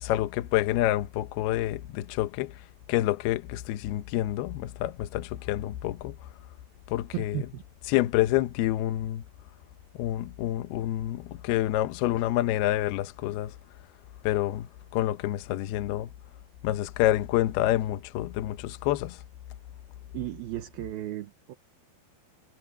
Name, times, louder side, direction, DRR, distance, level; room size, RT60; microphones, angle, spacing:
voice 1, 0.0-2.6 2.9-6.1 6.9-7.4 7.9-9.2 10.0-13.6 14.2-16.1 16.6-19.2, left 14 dB, 75° left, 2.7 m, -28 dB
voice 2, 7.1-7.6 20.1-21.6, right 15 dB, 70° right, 2.7 m, -35 dB
omnidirectional pair, 4.9 m